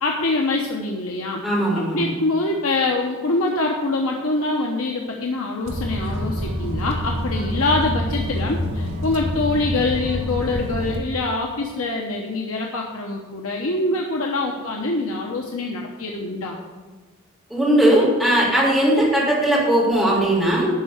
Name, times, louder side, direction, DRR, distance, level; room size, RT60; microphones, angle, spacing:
voice 1, 0.0-1.4 1.7-16.6, left 2 dB, 65° left, 0 dB, 0.9 m, -24 dB
voice 2, 1.4-2.1 17.5-20.7, right 1 dB, ahead, -6 dB, 3.4 m, -18 dB
sound 1, 5.7-11.0, equal, 65° right, 1.5 m, -27 dB
11.5 x 4.6 x 7.9 m, 1.4 s
head